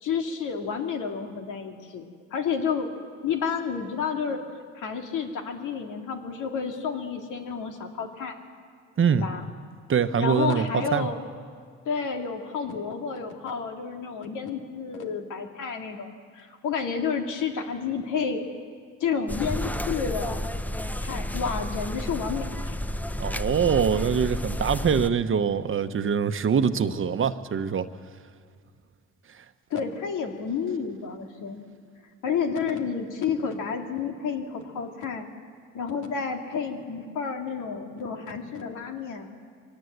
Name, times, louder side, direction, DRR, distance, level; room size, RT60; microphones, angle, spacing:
voice 1, 0.0-2.9 3.2-4.4 4.8-8.4 9.1-9.5 10.2-11.3 11.9-18.4 19.0-20.4 21.0-22.8 29.7-31.6 32.2-35.3 35.7-39.3, left 6 dB, 85° left, 3 dB, 2.3 m, -30 dB
voice 2, 9.9-11.1 23.2-27.9, right 7 dB, 45° right, 10 dB, 1.0 m, -24 dB
sound 1, 19.3-25.1, left 1 dB, 5° left, 0.6 m, -31 dB
23.5 x 18.5 x 8.0 m, 2.1 s
cardioid pair, 90°, 30 cm